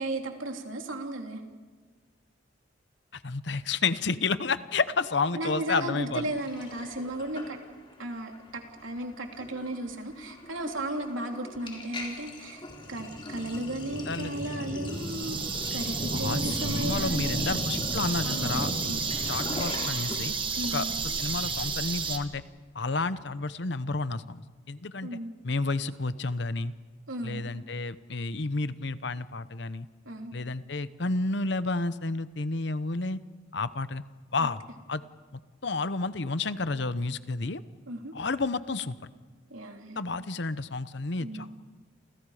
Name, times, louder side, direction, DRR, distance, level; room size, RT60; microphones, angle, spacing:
voice 1, 0.0-1.4 5.3-7.6 8.0-12.6 12.9-15.4 15.7-17.5 18.2-19.0 20.6-20.9 25.0-25.4 27.1-27.4 30.0-30.4 34.4-34.5 37.9-38.1 39.5-40.1 41.2-41.5, right 1 dB, 90° right, 3 dB, 3.1 m, -35 dB
voice 2, 3.1-6.3 14.1-14.3 16.1-18.7 19.2-20.3 20.7-22.4 22.7-25.1 25.4-26.7 27.2-29.9 30.3-33.2 33.5-34.0 34.3-34.6 34.9-35.0 35.6-37.6 38.1-39.0 40.0-41.5, left 3 dB, 60° left, 13 dB, 0.9 m, -31 dB
Sink (filling or washing), 5.7-7.9 8.2-8.5 8.8-20.2, left 1 dB, 25° left, 3.8 m, -37 dB
sound 1, 14.9-22.2, right 5 dB, 25° right, 1.7 m, -32 dB
29.0 x 28.5 x 5.0 m, 1.4 s
head